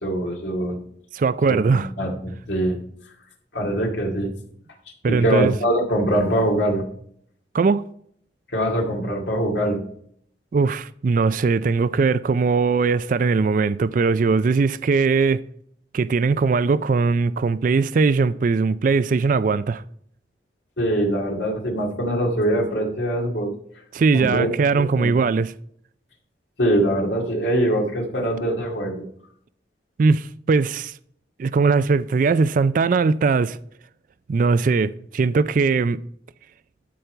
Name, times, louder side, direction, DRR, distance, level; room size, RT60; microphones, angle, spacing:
voice 1, 0.0-0.8 1.5-2.8 3.5-4.3 5.1-6.8 8.5-9.8 20.8-23.5 24.1-25.1 26.6-29.0, right 1 dB, 80° left, 2.2 m, -23 dB
voice 2, 1.1-1.9 5.0-5.5 7.5-7.8 10.5-15.4 15.9-19.8 23.9-25.5 30.0-30.9 31.4-33.6 34.3-36.0, right 4 dB, 45° right, 0.3 m, -20 dB
12.5 x 5.3 x 4.4 m
head